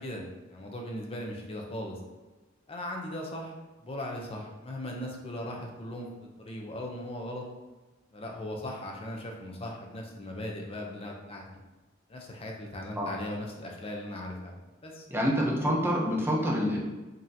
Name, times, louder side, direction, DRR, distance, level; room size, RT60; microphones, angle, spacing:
voice 1, 0.0-2.0 2.7-3.5 3.8-7.4 8.1-11.4 12.1-14.6 14.8-15.1, left 1 dB, 30° left, 0 dB, 0.6 m, -38 dB
voice 2, 15.1-16.8, equal, 10° right, -3 dB, 0.7 m, -27 dB
5.3 x 2.8 x 2.8 m, 1.2 s
head